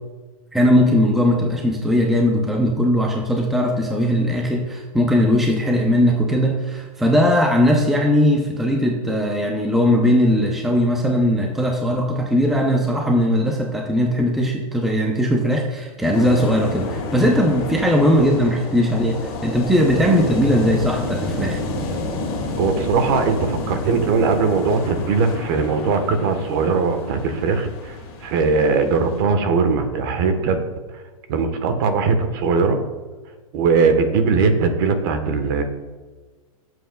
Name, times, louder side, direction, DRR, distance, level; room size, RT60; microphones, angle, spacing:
voice 1, 0.5-21.6, equal, ahead, 0 dB, 0.6 m, -19 dB
sound 1, 16.1-29.2, left 2 dB, 30° left, 2.8 m, -30 dB
voice 2, 22.6-28.0 28.2-30.6 31.3-32.8 33.5-35.6, right 4 dB, 40° right, 8 dB, 1.2 m, -20 dB
17.0 x 7.9 x 2.3 m, 1.3 s
hypercardioid pair, 160°, 18 cm